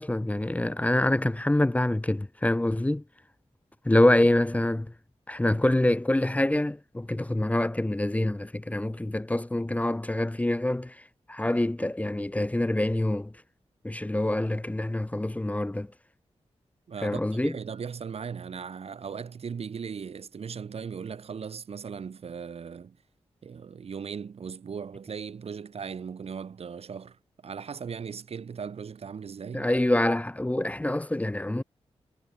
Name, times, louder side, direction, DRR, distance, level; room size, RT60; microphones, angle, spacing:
voice 1, 0.0-3.0 3.8-4.9 5.3-10.9 11.3-13.3 13.8-15.9 17.0-17.5 29.5-31.6, left 1 dB, 10° left, 0.8 m, -25 dB
voice 2, 16.9-23.0 23.4-29.7, right 6 dB, 60° right, 1.0 m, -38 dB
wide cardioid pair, 90°, 11 cm